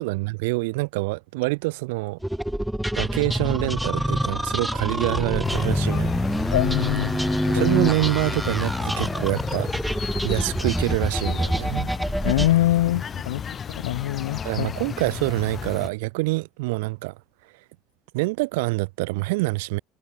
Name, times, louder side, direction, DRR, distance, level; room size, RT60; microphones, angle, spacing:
voice 1, 0.0-2.2 2.9-6.1 7.5-9.7 10.2-11.9 14.4-17.1 18.1-19.8, right 25 dB, 80° right, 1.7 m, -26 dB
sound 1, 2.2-12.5, right 1 dB, 5° right, 1.8 m, -26 dB
sound 2, 5.4-15.9, left 7 dB, 35° left, 4.2 m, -32 dB
voice 2, 6.5-7.2 7.5-7.7 12.2-13.4 13.7-14.7, left 15 dB, 90° left, 1.2 m, -23 dB
supercardioid pair, 85°, 0 cm